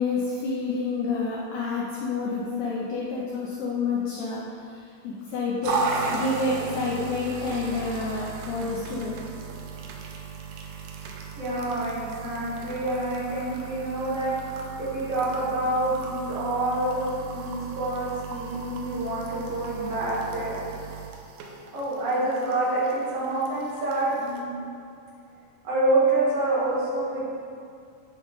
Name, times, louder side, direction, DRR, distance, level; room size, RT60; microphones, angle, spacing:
voice 1, 0.0-9.2, left 3 dB, 80° left, -5 dB, 1.6 m, -29 dB
sound 1, 5.6-24.4, right 4 dB, 85° right, 2.4 m, -36 dB
voice 2, 11.4-14.4 14.8-20.6 21.0-21.1 21.7-24.5 25.6-27.3, right 2 dB, 50° right, -9 dB, 2.6 m, -27 dB
9.4 x 4.8 x 3.2 m, 2.4 s
omnidirectional pair, 4.1 m